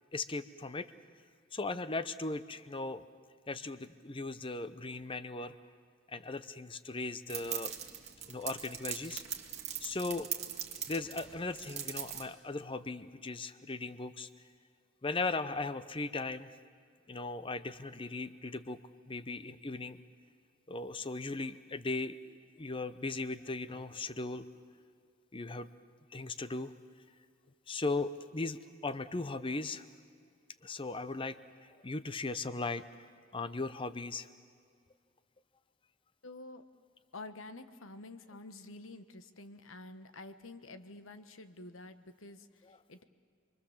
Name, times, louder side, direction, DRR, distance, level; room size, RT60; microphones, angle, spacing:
voice 1, 0.1-0.9 1.5-3.0 3.5-5.5 6.1-7.7 8.3-9.2 9.8-10.3 10.9-14.3 15.0-16.5 17.1-18.8 19.1-20.0 20.7-24.5 25.3-25.7 26.1-26.7 27.7-29.9 30.6-32.8 33.3-34.3, left 3 dB, 25° left, 13 dB, 0.8 m, -38 dB
sound 1, 7.3-12.2, right 9 dB, 35° right, 2.0 m, -41 dB
voice 2, 36.2-36.6 37.1-43.0, left 2 dB, 85° left, 10 dB, 1.3 m, -49 dB
28.0 x 23.0 x 7.3 m, 2.2 s
head